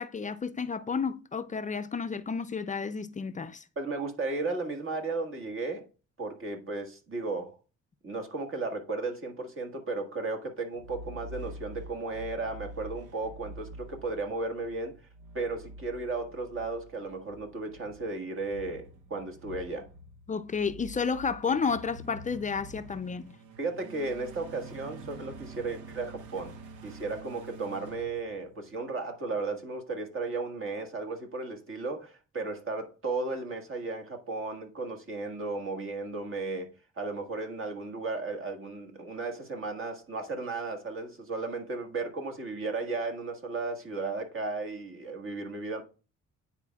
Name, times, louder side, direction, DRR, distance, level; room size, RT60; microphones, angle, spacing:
voice 1, 0.0-3.6 20.3-23.3, left 5 dB, 25° left, 0.4 m, -31 dB
voice 2, 3.8-5.9 6.2-7.6 8.0-14.9 15.3-19.9 23.6-45.8, right 3 dB, 45° right, 1.7 m, -35 dB
sound 1, 10.7-28.9, right 2 dB, 85° right, 0.9 m, -47 dB
9.8 x 4.3 x 2.3 m
cardioid pair, 90°, 30 cm